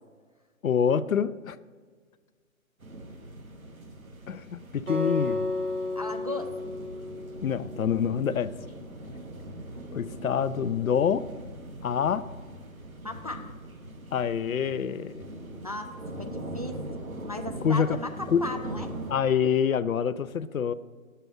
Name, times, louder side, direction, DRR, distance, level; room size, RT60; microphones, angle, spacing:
voice 1, 0.6-1.6 4.3-5.5 7.4-8.5 9.9-11.2 11.8-12.3 14.1-15.3 17.6-18.0 18.3-18.5 19.1-20.7, left 7 dB, 75° left, 15 dB, 0.6 m, -26 dB
sound 1, 2.8-19.1, right 1 dB, 85° right, 1.5 m, -41 dB
Acoustic guitar, 4.9-8.1, left 2 dB, 60° right, 2.6 m, -32 dB
voice 2, 6.0-6.6 13.0-13.5 15.6-16.8 17.3-18.9, left 2 dB, 30° right, 4 dB, 0.4 m, -36 dB
10.0 x 6.8 x 4.7 m, 1.6 s
figure-of-eight pair, 145°, 41 cm